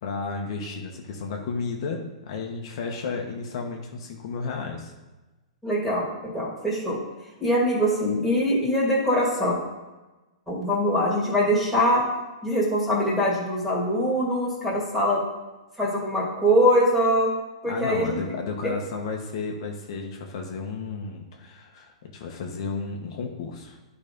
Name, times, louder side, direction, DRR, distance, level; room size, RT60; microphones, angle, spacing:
voice 1, 0.0-4.9 17.7-23.8, left 4 dB, 45° left, 1 dB, 1.2 m, -33 dB
voice 2, 5.6-6.1 6.3-7.0 7.4-9.6 10.5-12.1 12.4-15.2 15.8-17.3 17.6-18.2 18.6-18.7, equal, ahead, -5 dB, 2.2 m, -23 dB
10.5 x 4.1 x 5.3 m, 1.1 s
hypercardioid pair, 165°, 4 cm